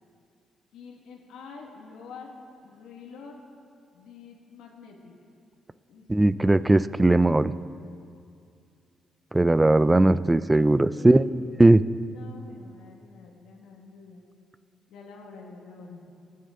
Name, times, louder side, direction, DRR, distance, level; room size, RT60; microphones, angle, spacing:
voice 1, 0.7-2.3 2.6-3.4 3.9-5.1 5.9-6.1 10.9-11.2 11.9-14.2 14.9-16.0, left 5 dB, 85° left, -1 dB, 1.8 m, -47 dB
voice 2, 6.1-7.5 9.3-11.3 11.6-11.8, right 2 dB, 15° right, 15 dB, 0.4 m, -19 dB
24.0 x 9.5 x 3.8 m, 2.4 s
cardioid pair, 90°, 0 cm